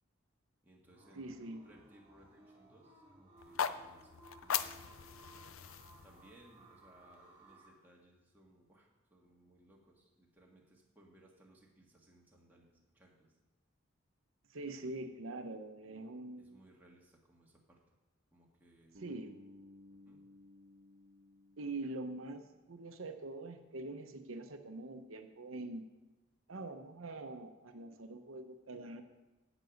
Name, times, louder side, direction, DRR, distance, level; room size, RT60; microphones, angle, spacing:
voice 1, 0.6-4.9 6.0-13.3 14.7-15.0 16.4-17.8 18.3-19.0 19.9-20.2, right 1 dB, 10° right, -2 dB, 1.6 m, -64 dB
sound 1, 0.8-7.7, right 2 dB, 25° right, 2.6 m, -60 dB
voice 2, 1.1-1.6 14.5-16.5 19.0-19.4 21.6-22.4 22.7-25.9 26.5-29.0, right 2 dB, 80° right, 7 dB, 0.8 m, -44 dB
sound 2, 3.4-7.5, left 8 dB, 80° left, 0.5 m, -40 dB
Bass guitar, 18.9-22.9, left 1 dB, 60° right, 1.1 m, -59 dB
15.5 x 6.1 x 5.2 m, 1.1 s
head